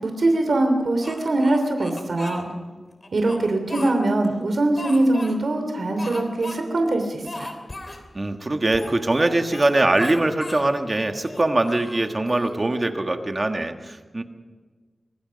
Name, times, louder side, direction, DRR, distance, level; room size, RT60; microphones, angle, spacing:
voice 1, 0.0-2.5 3.1-7.5, right 2 dB, 70° right, 5 dB, 2.9 m, -22 dB
Speech, 1.0-2.4 3.0-4.3 4.8-5.4 6.0-6.6 6.9-7.0 7.2-8.0 8.7-9.7 10.0-10.7 11.2-12.5, left 2 dB, 35° left, 3.5 m, -37 dB
voice 2, 8.1-14.2, right 2 dB, 35° right, 5 dB, 1.7 m, -22 dB
25.5 x 19.5 x 5.3 m, 1.4 s
wide cardioid pair, 100°, 0 cm